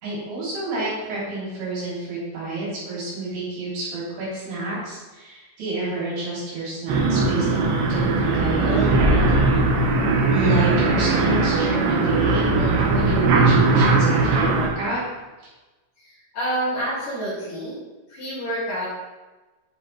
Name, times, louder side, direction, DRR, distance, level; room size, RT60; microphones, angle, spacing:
voice 1, 0.0-9.2 9.5-9.6 10.3-15.0 15.4-15.5, right 2 dB, 55° right, -8 dB, 5.2 m, -29 dB
sound 1, 6.9-14.7, right 3 dB, 85° right, 2.0 m, -19 dB
voice 2, 16.3-17.7 18.1-18.9, right 1 dB, 50° left, -9 dB, 3.7 m, -27 dB
9.6 x 7.7 x 3.4 m, 1.2 s
omnidirectional pair, 5.8 m